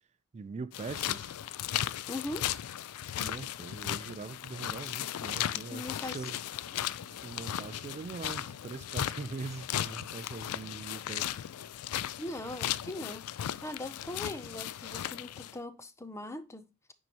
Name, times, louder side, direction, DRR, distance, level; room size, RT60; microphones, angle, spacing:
voice 1, 0.3-1.4 3.2-6.4 7.2-11.5, right 4 dB, 30° right, 0.3 m, -42 dB
Footsteps-Mud&Grass, 0.7-15.6, left 11 dB, 85° left, 0.4 m, -36 dB
voice 2, 2.1-2.5 5.5-6.2 12.2-13.3 13.6-16.7, left 2 dB, 15° left, 0.6 m, -40 dB
sound 1, 6.1-11.0, left 2 dB, 65° left, 1.0 m, -58 dB
9.1 x 4.6 x 2.9 m
head